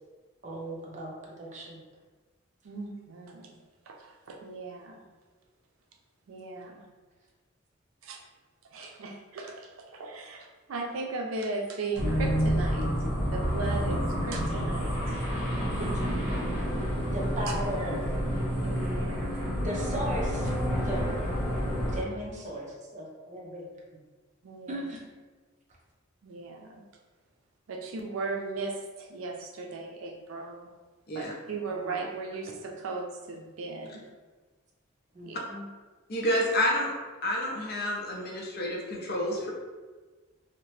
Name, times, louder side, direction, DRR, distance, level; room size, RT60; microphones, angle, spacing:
voice 1, 0.4-1.8 17.1-18.1 19.6-21.1 21.9-24.0 24.7-25.1 31.7-32.2 35.1-35.7, right 1 dB, 35° right, -2 dB, 0.5 m, -37 dB
voice 2, 2.6-3.5 3.9-5.0 6.3-6.9 8.0-8.2 8.7-12.9 13.3-15.2 15.8-15.9 18.6-19.4 24.4-24.8 26.2-26.8 27.7-30.7 31.1-34.1 35.2-35.4, right 3 dB, 85° right, 2 dB, 0.4 m, -37 dB
sound 1, 12.0-22.0, equal, ahead, 1.3 m, -29 dB
voice 3, 36.1-36.9 37.2-39.5, left 1 dB, 50° left, -1 dB, 0.5 m, -29 dB
2.8 x 2.0 x 3.0 m, 1.3 s
head